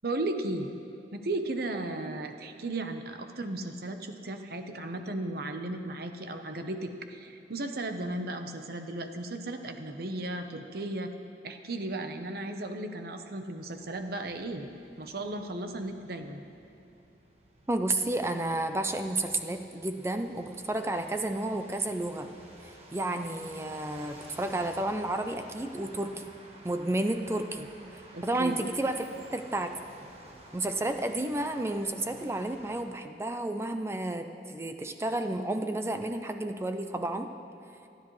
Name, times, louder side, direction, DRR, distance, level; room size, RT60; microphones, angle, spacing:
voice 1, 0.0-0.7 1.1-11.1 11.4-14.7 15.0-16.4 28.1-28.6, right 2 dB, 60° right, 6 dB, 0.9 m, -35 dB
sound 1, 13.6-32.8, right 1 dB, 35° right, 1.5 m, -53 dB
voice 2, 17.7-22.3 22.6-26.3 26.6-27.7 28.2-29.7 30.5-37.3, right 2 dB, 15° right, 7 dB, 0.5 m, -31 dB
27.0 x 10.5 x 3.2 m, 2.7 s
head